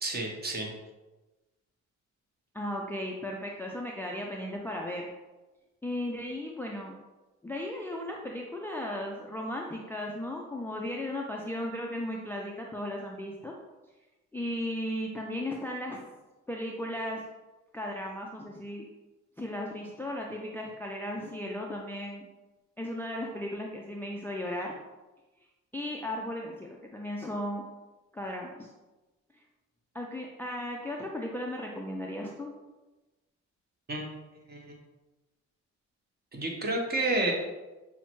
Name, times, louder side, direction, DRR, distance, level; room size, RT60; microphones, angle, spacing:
voice 1, 0.0-0.7 33.9-34.0 34.5-34.7 36.3-37.3, right 2 dB, 30° right, 1 dB, 0.8 m, -30 dB
voice 2, 2.5-5.1 5.8-6.9 7.4-13.5 14.3-16.1 16.5-17.2 17.7-18.8 19.4-22.3 22.8-24.8 25.7-27.6 28.1-28.7 29.9-32.5, left 1 dB, 5° left, -1 dB, 0.3 m, -36 dB
5.5 x 2.1 x 3.0 m, 1.1 s
cardioid pair, 90°, 30 cm